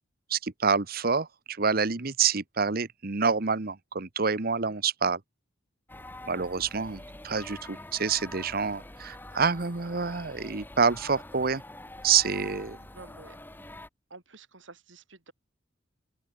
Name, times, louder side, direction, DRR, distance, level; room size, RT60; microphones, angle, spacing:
voice 1, 0.3-5.2 6.3-11.6 12.0-12.8, right 5 dB, 50° right, 1.1 m, -27 dB
sound 1, 5.9-13.9, left 1 dB, 10° left, 1.4 m, -45 dB
voice 2, 12.9-13.4 14.1-15.3, right 3 dB, 80° right, 3.2 m, -50 dB
open air
head